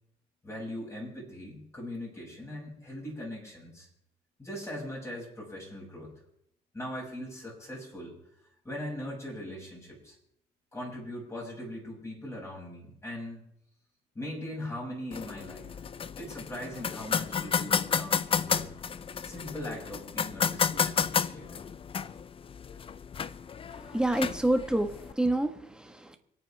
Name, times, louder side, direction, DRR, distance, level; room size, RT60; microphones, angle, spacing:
voice 1, 0.4-3.9 4.4-6.1 6.7-8.1 8.6-10.2 10.7-13.4 14.2-15.8 16.2-18.7 19.2-21.6, left 1 dB, 15° left, -3 dB, 7.1 m, -40 dB
sound 1, 15.1-25.1, left 7 dB, 35° left, 0.6 m, -32 dB
voice 2, 23.7-26.2, right 1 dB, 5° right, 6 dB, 1.6 m, -28 dB
27.5 x 9.3 x 3.6 m, 0.73 s
cardioid pair, 110°, 17 cm